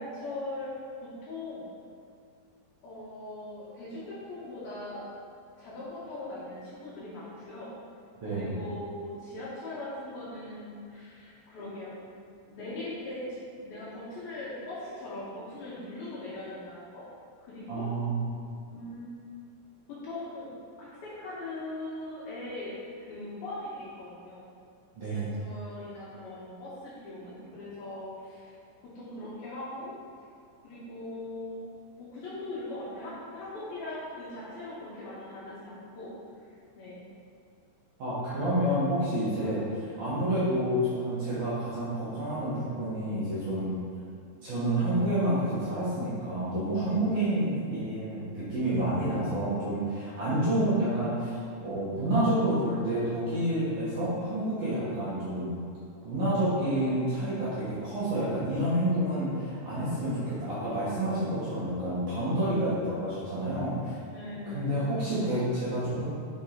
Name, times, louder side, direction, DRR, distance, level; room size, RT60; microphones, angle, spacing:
voice 1, 0.0-1.7 2.8-5.1 5.6-7.7 8.3-11.9 12.5-17.0 17.4-17.9 18.6-19.1 19.9-20.5 20.8-24.5 25.1-28.6 28.8-29.9 30.6-31.6 32.0-36.1 36.8-37.0 50.2-50.5 62.4-62.6 64.1-64.8, left 2 dB, 65° left, -9 dB, 3.0 m, -40 dB
voice 2, 8.2-8.6 17.7-18.3 24.9-25.3 38.0-43.7 44.4-55.5 56.0-64.0 64.5-66.0, right 1 dB, 55° right, -11 dB, 2.5 m, -29 dB
9.9 x 5.3 x 3.9 m, 2.2 s
omnidirectional pair, 5.4 m